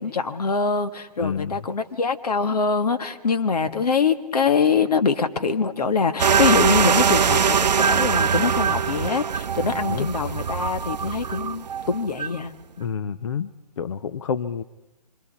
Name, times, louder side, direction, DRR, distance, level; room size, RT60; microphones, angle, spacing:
voice 1, 0.0-12.5, left 5 dB, 65° left, 7 dB, 1.8 m, -24 dB
voice 2, 1.2-1.6 9.7-10.1 12.8-13.5 13.8-14.6, left 7 dB, 50° left, 14 dB, 0.7 m, -28 dB
sound 1, 6.2-12.4, right 7 dB, 80° right, 0.6 m, -22 dB
26.0 x 26.0 x 4.3 m, 1.0 s
hypercardioid pair, 155°, 21 cm